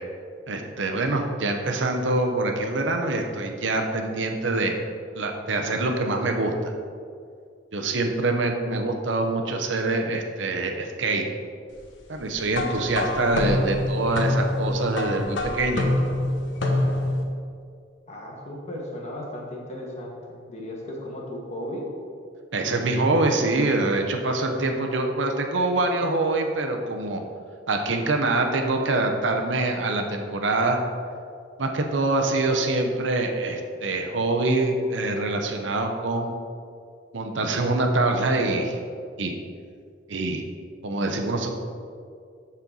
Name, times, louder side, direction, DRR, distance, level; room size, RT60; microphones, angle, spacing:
voice 1, 0.5-4.8 5.2-6.7 7.7-11.2 12.1-15.9 22.5-27.2 27.7-30.8 31.6-36.3 37.1-38.8 39.2-39.3 40.1-40.4 40.8-41.5, right 2 dB, 80° right, 3 dB, 0.9 m, -25 dB
sound 1, 12.5-17.2, left 1 dB, 80° left, 1.1 m, -26 dB
voice 2, 18.1-21.8, left 1 dB, 35° left, -3 dB, 1.7 m, -36 dB
13.0 x 4.4 x 4.0 m, 2.3 s
head